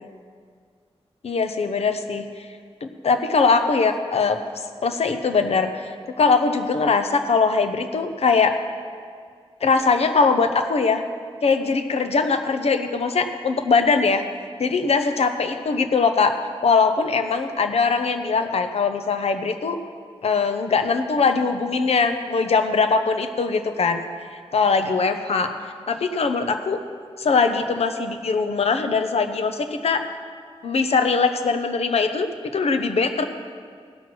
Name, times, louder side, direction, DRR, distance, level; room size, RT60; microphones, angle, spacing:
voice 1, 1.2-2.5 2.8-4.4 4.8-8.6 9.6-11.0 11.4-14.2 14.6-19.8 20.2-24.0 24.3-25.5 25.9-26.8 27.2-30.0 30.6-33.2, left 4 dB, 75° left, 7 dB, 0.8 m, -21 dB
16.5 x 6.0 x 6.2 m, 2.1 s
wide cardioid pair, 150°, 11 cm